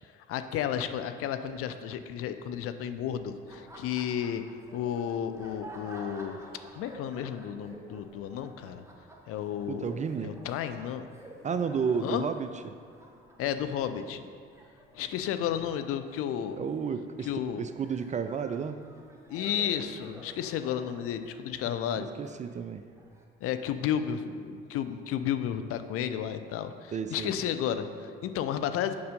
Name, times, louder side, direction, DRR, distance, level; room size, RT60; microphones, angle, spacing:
voice 1, 0.3-4.4 4.7-6.4 6.7-8.8 9.3-10.0 10.2-11.1 12.0-12.2 13.4-14.3 14.9-16.6 17.2-17.7 19.3-22.1 23.4-28.9, left 9 dB, 50° left, 9 dB, 0.5 m, -32 dB
Laughter, 3.4-23.2, right 1 dB, 10° right, 1.3 m, -51 dB
voice 2, 9.7-10.4 11.4-12.5 16.6-17.3 17.6-18.8 22.0-22.8 26.9-27.3, right 6 dB, 25° right, 10 dB, 0.4 m, -32 dB
6.7 x 5.4 x 5.2 m, 2.1 s
figure-of-eight pair, 55°, 29 cm